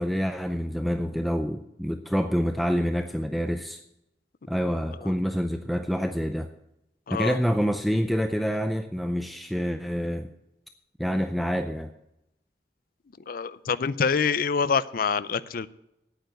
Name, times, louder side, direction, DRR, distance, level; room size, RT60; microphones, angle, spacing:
voice 1, 0.0-3.8 4.5-6.5 7.1-10.3 11.0-11.9, equal, ahead, 7 dB, 0.4 m, -27 dB
voice 2, 7.1-7.4 13.3-15.7, left 5 dB, 55° left, 16 dB, 0.5 m, -26 dB
9.3 x 8.8 x 7.9 m, 0.86 s
head